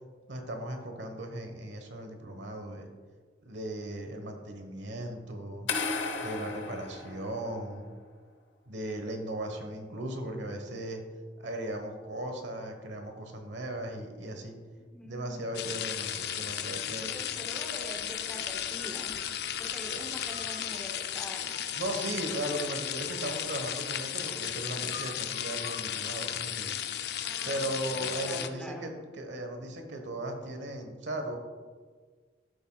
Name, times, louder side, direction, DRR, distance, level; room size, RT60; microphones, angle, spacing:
voice 1, 0.3-2.9 3.4-5.7 6.2-7.9 8.7-11.0 11.4-14.6 15.0-17.2 19.9-20.0 21.8-26.8 27.4-31.4, right 1 dB, 75° right, 4 dB, 1.2 m, -37 dB
sound 1, 5.7-7.8, left 4 dB, 85° left, 1.0 m, -34 dB
voice 2, 14.8-15.4 17.0-19.2 19.6-21.5 27.1-28.9, equal, 5° left, 1 dB, 0.9 m, -44 dB
sound 2, 15.5-28.5, left 10 dB, 60° left, 0.4 m, -35 dB
12.0 x 7.2 x 2.4 m, 1.5 s
head